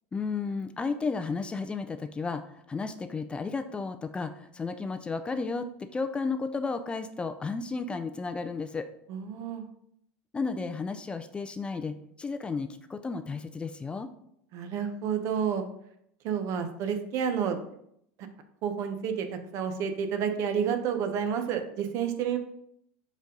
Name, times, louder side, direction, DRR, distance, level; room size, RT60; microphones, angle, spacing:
voice 1, 0.1-8.9 10.3-14.1, left 4 dB, 15° left, 10 dB, 0.4 m, -33 dB
voice 2, 9.1-9.7 14.5-15.6 16.2-17.6 18.2-18.3 18.6-22.4, right 7 dB, 55° right, 7 dB, 0.9 m, -30 dB
5.3 x 5.2 x 3.8 m, 0.72 s
supercardioid pair, 115°, 6 cm